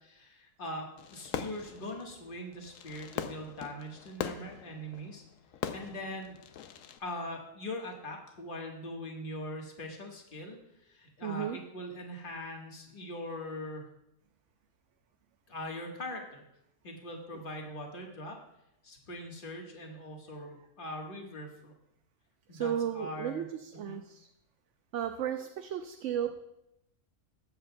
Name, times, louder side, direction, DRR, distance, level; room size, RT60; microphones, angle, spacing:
voice 1, 0.1-5.2 5.7-6.4 7.0-13.9 15.5-16.4 16.8-18.4 18.8-21.7 22.5-23.5 23.7-24.0, left 1 dB, 40° left, 1 dB, 1.6 m, -41 dB
Fireworks, 1.0-7.0, left 8 dB, 70° left, 1.0 m, -41 dB
voice 2, 11.2-11.6 22.5-24.3 24.9-26.3, right 9 dB, 65° right, 7 dB, 0.8 m, -34 dB
20.0 x 7.8 x 2.2 m, 0.84 s
omnidirectional pair, 1.5 m